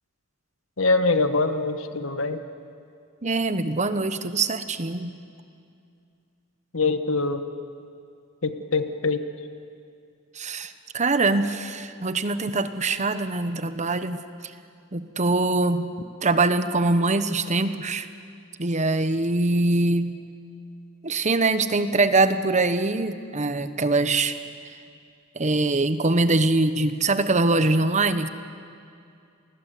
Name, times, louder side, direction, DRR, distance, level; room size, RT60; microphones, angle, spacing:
voice 1, 0.8-2.4 6.7-7.4 8.4-9.2, left 3 dB, 70° left, 10 dB, 1.4 m, -23 dB
voice 2, 3.2-5.2 10.3-14.2 14.9-15.9 16.2-18.1 18.6-20.2 21.0-24.4 25.3-28.3, right 3 dB, 35° right, 11 dB, 1.1 m, -23 dB
28.0 x 20.5 x 8.4 m, 2.4 s
head